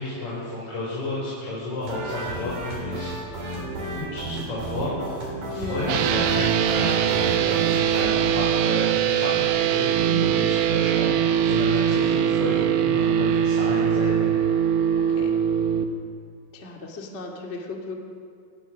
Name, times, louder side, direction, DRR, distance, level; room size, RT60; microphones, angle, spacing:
voice 1, 0.0-3.1 3.9-14.3, left 2 dB, 30° left, -7 dB, 5.4 m, -32 dB
sound 1, 1.8-8.0, right 1 dB, 45° right, 4.0 m, -33 dB
voice 2, 5.5-6.0 10.0-10.3 15.0-15.3 16.5-17.9, left 3 dB, 85° left, 0 dB, 0.6 m, -35 dB
sound 2, 5.9-15.8, right 9 dB, 75° right, 3.5 m, -22 dB
27.5 x 17.0 x 6.3 m, 2.4 s
omnidirectional pair, 5.7 m